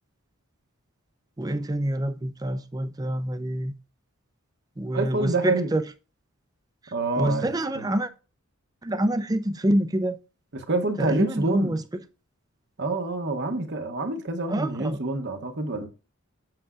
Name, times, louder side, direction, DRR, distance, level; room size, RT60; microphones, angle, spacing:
voice 1, 1.4-3.7 4.8-5.8 6.8-8.1 8.8-10.2 11.0-11.8 14.5-15.0, right 1 dB, 15° right, 0.5 m, -26 dB
voice 2, 4.9-5.7 6.9-7.5 10.5-11.8 12.8-15.9, right 2 dB, 50° right, 0.9 m, -27 dB
7.7 x 6.8 x 2.4 m
head